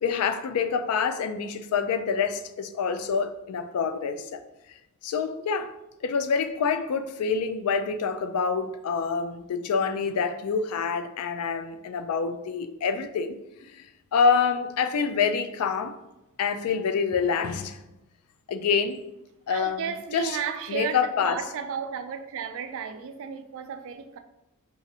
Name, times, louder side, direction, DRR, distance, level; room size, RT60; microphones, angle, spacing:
voice 1, 0.0-4.4 4.7-4.8 5.0-5.7 6.0-13.4 13.6-13.9 14.1-16.0 16.4-17.8 18.5-19.0 19.5-20.4 20.7-21.4, left 6 dB, 75° left, 0.3 m, -26 dB
voice 2, 19.5-24.2, right 7 dB, 60° right, 0.3 m, -34 dB
4.0 x 2.5 x 2.7 m
head